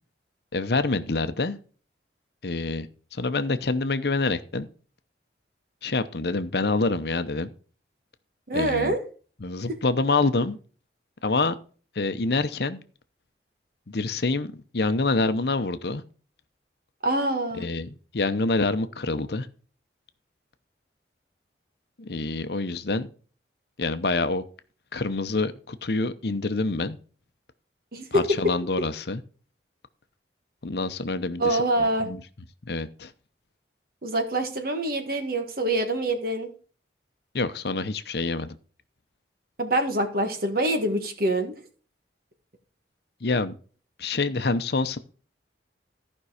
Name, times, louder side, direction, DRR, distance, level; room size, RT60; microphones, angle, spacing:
voice 1, 0.5-1.6 2.4-2.9 3.1-4.7 5.8-7.5 8.5-9.0 9.4-10.6 11.2-11.6 11.9-12.8 13.9-16.0 17.5-17.9 18.1-19.5 22.0-23.1 23.8-24.4 24.9-27.0 28.1-29.2 30.6-31.6 32.0-32.2 32.6-33.1 37.3-38.5 43.2-43.5 44.0-45.0, left 3 dB, 60° left, 11 dB, 0.8 m, -26 dB
voice 2, 8.5-9.0 17.0-17.7 27.9-28.4 31.4-32.1 34.0-36.5 39.6-41.6, right 1 dB, 55° right, 6 dB, 1.7 m, -25 dB
14.0 x 5.4 x 4.9 m, 0.39 s
head